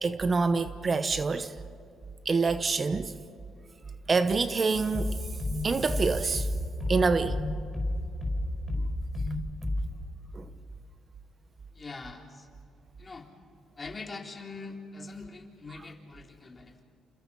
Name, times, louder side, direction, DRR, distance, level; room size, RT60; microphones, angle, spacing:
voice 1, 0.0-1.5 2.2-3.1 4.1-5.2 5.6-6.5 6.9-7.4 10.3-10.4, right 4 dB, 35° right, 1.0 m, -26 dB
sound 1, 4.9-9.9, left 1 dB, 10° left, 5.2 m, -31 dB
voice 2, 11.7-12.5 13.0-13.3 13.8-16.8, left 3 dB, 30° left, 3.7 m, -43 dB
29.0 x 28.0 x 5.7 m
cardioid pair, 90°, 0 cm